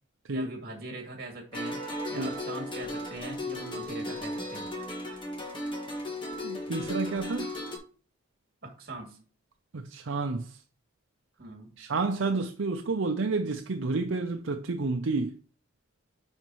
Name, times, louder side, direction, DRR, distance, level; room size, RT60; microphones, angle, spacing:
voice 1, 0.3-1.8 2.1-4.7 8.6-9.2 11.4-11.7, right 2 dB, 50° right, 2.6 m, -41 dB
sound 1, 1.5-7.8, left 1 dB, 25° left, 1.7 m, -35 dB
voice 2, 6.4-7.6 9.7-10.6 11.8-15.4, right 3 dB, 80° right, 0.6 m, -30 dB
10.0 x 5.2 x 3.1 m
head